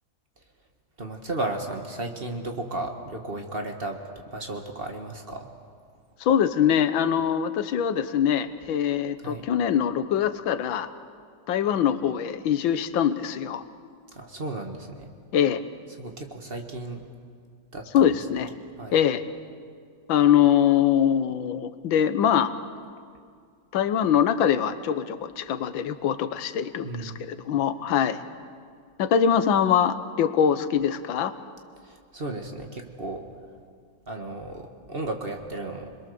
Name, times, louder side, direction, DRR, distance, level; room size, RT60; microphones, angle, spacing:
voice 1, 1.0-5.5 9.2-9.5 14.1-15.1 16.0-17.0 17.7-18.2 18.8-19.0 26.8-27.3 31.8-33.2 34.1-35.9, right 2 dB, 30° right, 4 dB, 1.7 m, -34 dB
voice 2, 6.2-10.9 11.5-13.6 15.3-15.6 17.9-18.5 18.9-19.2 20.1-22.5 23.7-28.2 29.0-31.3, left 9 dB, 90° left, 11 dB, 1.7 m, -23 dB
27.5 x 21.5 x 6.8 m, 2.1 s
omnidirectional pair, 2.1 m